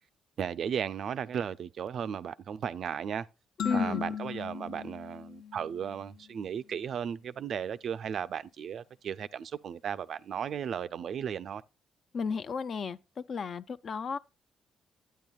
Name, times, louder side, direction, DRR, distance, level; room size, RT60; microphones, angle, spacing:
voice 1, 0.4-3.3 3.7-11.6, right 8 dB, 60° right, 0.3 m, -35 dB
sound 1, 3.6-6.2, left 8 dB, 80° left, 1.0 m, -37 dB
voice 2, 3.6-4.0 12.1-13.0 13.3-14.2, left 5 dB, 50° left, 0.4 m, -32 dB
10.5 x 9.1 x 2.3 m
cardioid pair, 90°, 0 cm